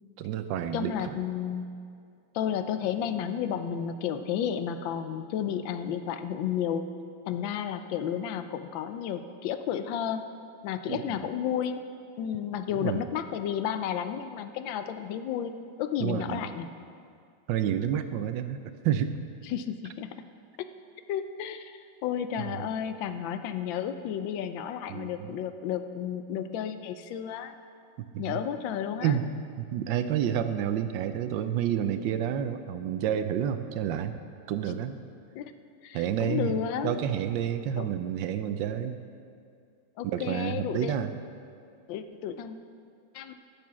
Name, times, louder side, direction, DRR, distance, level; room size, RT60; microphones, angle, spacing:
voice 1, 0.2-1.2 10.9-11.2 12.8-13.0 16.0-16.4 17.5-19.2 24.9-25.1 28.1-28.4 29.0-29.3 29.6-34.1 34.5-35.0 35.9-36.6 36.8-39.0 40.0-41.1, right 9 dB, 75° right, 10 dB, 1.2 m, -29 dB
voice 2, 0.7-1.6 2.3-6.8 7.3-10.2 10.6-11.8 12.2-15.5 15.8-16.7 19.4-20.1 20.6-20.7 21.1-27.6 28.2-29.2 35.3-35.5 35.8-37.0 37.8-38.1 40.0-41.1 41.9-42.6 43.1-43.4, left 9 dB, 80° left, 9 dB, 1.4 m, -32 dB
12.5 x 7.0 x 6.0 m, 2.3 s
omnidirectional pair, 2.1 m